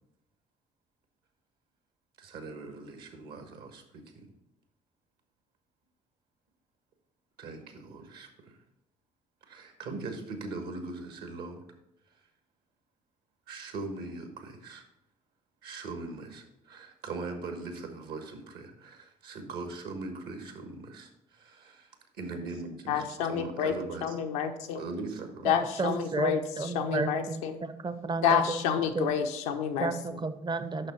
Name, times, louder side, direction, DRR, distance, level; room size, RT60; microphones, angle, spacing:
voice 1, 2.2-4.2 7.4-8.6 9.5-11.6 13.5-14.8 15.6-24.2 24.7-25.9, right 3 dB, 60° right, 6 dB, 1.3 m, -41 dB
voice 2, 22.9-24.8 25.4-27.6 28.2-29.9, left 7 dB, 75° left, 5 dB, 0.7 m, -29 dB
voice 3, 25.4-28.6 28.9-29.1 29.8-30.9, right 3 dB, 25° right, 11 dB, 0.7 m, -32 dB
6.5 x 5.8 x 4.4 m, 0.87 s
hypercardioid pair, 50°, 19 cm